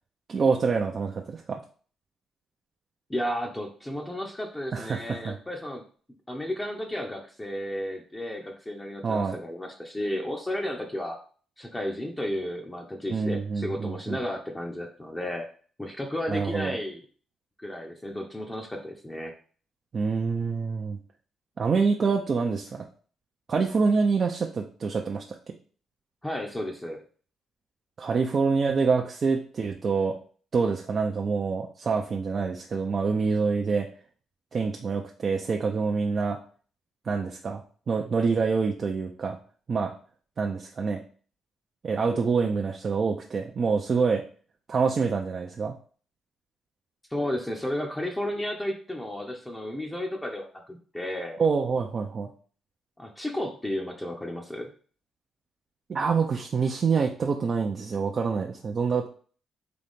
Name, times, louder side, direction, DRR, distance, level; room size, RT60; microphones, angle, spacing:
voice 1, 0.3-1.6 4.7-5.4 9.0-9.4 13.1-14.2 16.3-16.8 19.9-21.0 21.6-22.9 23.5-25.2 28.0-30.2 30.5-33.9 34.5-36.4 37.0-39.4 39.7-39.9 40.4-41.0 41.8-44.2 44.7-45.8 51.4-52.3 55.9-59.1, right 5 dB, 45° right, 2 dB, 0.5 m, -26 dB
voice 2, 3.1-5.8 6.3-11.2 11.6-15.5 15.8-17.0 17.6-19.3 26.2-27.0 47.1-51.4 53.0-54.7, left 1 dB, 15° left, 0 dB, 0.6 m, -33 dB
4.0 x 2.8 x 3.5 m, 0.42 s
cardioid pair, 90°, 0 cm